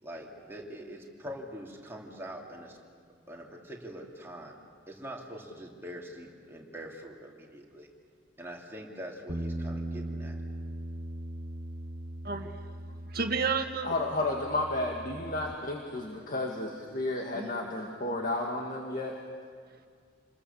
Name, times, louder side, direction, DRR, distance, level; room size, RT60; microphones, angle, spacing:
voice 1, 0.0-2.8 3.3-4.6 4.9-7.9 8.4-10.4, equal, 15° right, -2 dB, 3.0 m, -43 dB
Bass guitar, 9.3-15.5, right 1 dB, 30° right, 1.2 m, -39 dB
voice 2, 12.2-13.9 17.3-17.5, right 5 dB, 55° right, 5 dB, 1.7 m, -32 dB
voice 3, 13.8-19.2, left 2 dB, 45° left, 1 dB, 1.9 m, -32 dB
27.5 x 21.5 x 7.1 m, 2.2 s
head